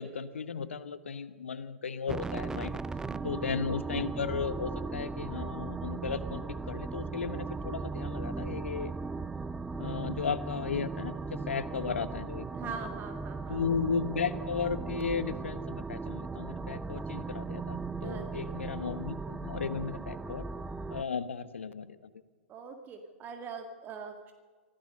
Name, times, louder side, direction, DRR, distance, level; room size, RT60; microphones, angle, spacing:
voice 1, 0.0-2.8 3.2-8.9 9.8-12.8 13.5-20.4 20.9-22.1, left 6 dB, 70° left, 13 dB, 1.2 m, -35 dB
sound 1, 2.1-21.0, right 4 dB, 10° right, 0.5 m, -37 dB
voice 2, 3.1-3.4 12.5-13.6 18.0-18.5 22.5-24.3, right 5 dB, 25° right, 5 dB, 1.9 m, -43 dB
25.5 x 15.5 x 6.6 m, 1.4 s
figure-of-eight pair, 105°, 7 cm